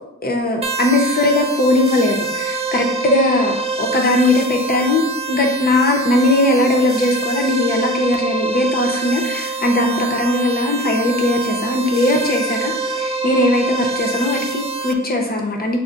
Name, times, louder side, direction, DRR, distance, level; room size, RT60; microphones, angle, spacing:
voice 1, 0.2-15.8, left 1 dB, 30° left, 1 dB, 0.7 m, -19 dB
sound 1, 0.6-14.9, right 3 dB, 20° right, 0.4 m, -25 dB
6.3 x 2.1 x 2.4 m, 0.90 s
cardioid pair, 80°, 31 cm